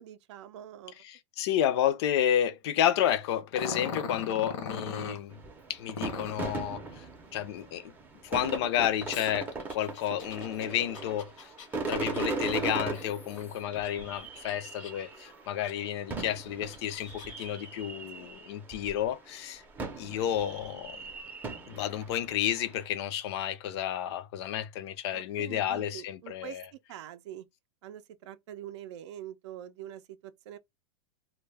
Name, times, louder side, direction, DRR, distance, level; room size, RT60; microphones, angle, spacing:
voice 1, 0.0-1.0 18.2-18.3 25.1-27.4 27.8-30.6, right 11 dB, 65° right, 0.4 m, -45 dB
voice 2, 1.0-5.4 5.7-7.1 7.3-7.9 8.2-11.5 11.9-19.6 20.0-21.0 21.7-26.7, left 10 dB, 55° left, 0.5 m, -31 dB
Growling, 3.5-5.2 5.9-6.5 9.1-13.9 14.3-15.2 15.7-15.8 16.4-17.5, left 4 dB, 80° left, 0.9 m, -40 dB
sound 1, 5.3-19.0 19.8-22.8, right 3 dB, 10° right, 0.5 m, -38 dB
2.2 x 2.0 x 3.2 m
supercardioid pair, 150°, 16 cm